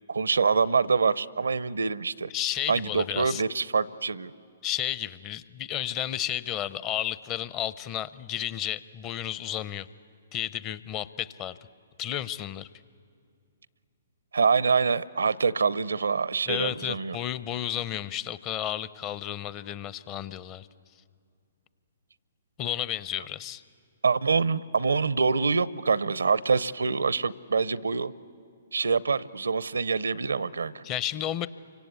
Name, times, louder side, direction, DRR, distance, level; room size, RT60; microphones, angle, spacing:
voice 1, 0.1-2.3 2.7-4.3 14.3-17.2 24.0-28.1 28.7-30.8, right 5 dB, 80° right, 19 dB, 0.6 m, -25 dB
voice 2, 2.3-3.4 4.6-9.9 10.3-11.6 12.0-12.7 16.5-20.7 22.6-23.6 30.8-31.5, left 11 dB, 30° left, 16 dB, 0.7 m, -32 dB
28.5 x 25.0 x 8.3 m, 2.3 s
figure-of-eight pair, 130°, 0 cm